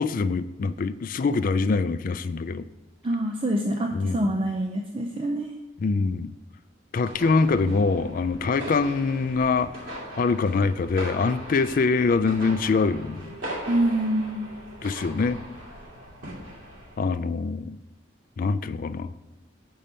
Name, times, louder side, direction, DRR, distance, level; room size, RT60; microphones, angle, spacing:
voice 1, 0.0-2.6 3.9-4.2 5.8-6.3 6.9-9.9 10.2-13.3 14.8-15.4 17.0-17.8 18.4-19.1, left 4 dB, 45° left, 13 dB, 0.3 m, -24 dB
voice 2, 3.0-5.5 13.6-14.5, right 1 dB, 30° right, 2 dB, 0.5 m, -26 dB
sound 1, 7.0-17.0, right 1 dB, 80° right, 2.4 m, -39 dB
7.5 x 5.5 x 5.2 m, 0.97 s
head